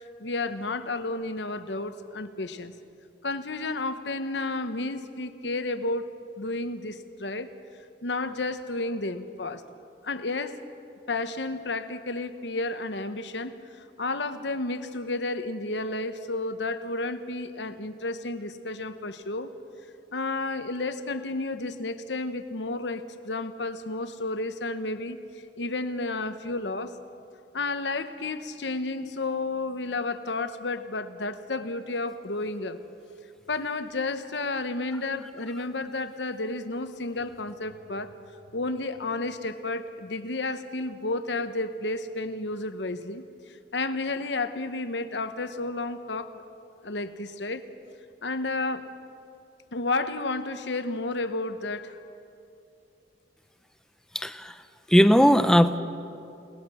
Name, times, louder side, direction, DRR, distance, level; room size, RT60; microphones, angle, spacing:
voice 1, 0.2-2.7 3.2-7.5 8.0-9.6 10.0-10.6 11.1-19.5 20.1-25.2 25.6-26.9 27.5-32.8 33.5-38.1 38.5-43.2 43.7-46.4 46.8-47.7 48.2-48.9 49.7-52.0, left 2 dB, 75° left, 10 dB, 1.2 m, -31 dB
voice 2, 54.1-54.5 54.9-55.8, equal, 5° left, 10 dB, 0.7 m, -18 dB
30.0 x 19.0 x 6.4 m, 2.6 s
head